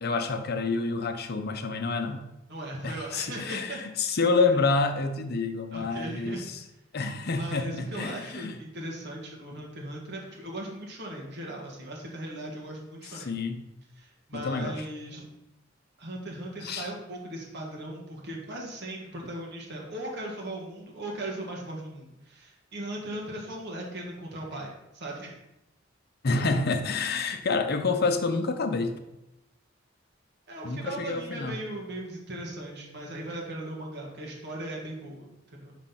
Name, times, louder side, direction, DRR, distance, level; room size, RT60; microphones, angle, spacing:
voice 1, 0.0-2.3 2.8-6.6 6.9-8.6 13.1-13.6 14.3-14.9 16.6-16.9 26.2-29.0 30.6-31.6, left 3 dB, 55° left, 7 dB, 0.6 m, -28 dB
voice 2, 2.5-3.8 4.5-4.6 5.7-6.5 7.3-13.3 14.0-15.3 16.0-25.4 30.5-35.8, right 1 dB, 60° right, -2 dB, 1.5 m, -38 dB
5.0 x 3.8 x 5.8 m, 0.90 s
head